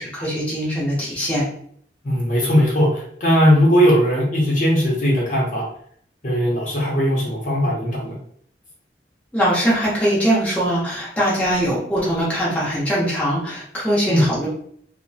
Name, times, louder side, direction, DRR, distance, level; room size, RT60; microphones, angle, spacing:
voice 1, 0.0-1.4 9.3-14.5, equal, 10° left, -8 dB, 0.9 m, -21 dB
voice 2, 2.0-5.6 6.2-8.2 14.1-14.3, equal, 45° left, -4 dB, 0.8 m, -18 dB
2.9 x 2.1 x 2.7 m, 0.62 s
head